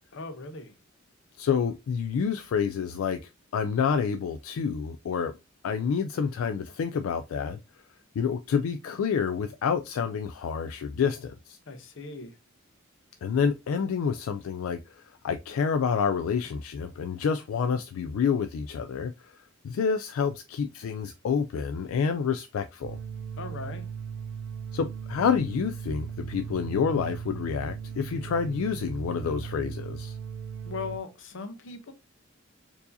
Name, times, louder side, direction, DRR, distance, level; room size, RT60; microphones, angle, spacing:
voice 1, 0.1-0.8 11.7-12.3 23.4-23.8 30.6-31.9, left 4 dB, 65° left, 0.7 m, -38 dB
voice 2, 1.4-5.3 5.6-7.6 8.2-11.6 13.2-19.3 19.6-23.0 24.7-30.1, left 6 dB, 80° left, 0.3 m, -28 dB
sound 1, 22.8-31.0, right 7 dB, 55° right, 0.3 m, -38 dB
4.5 x 2.7 x 2.5 m
head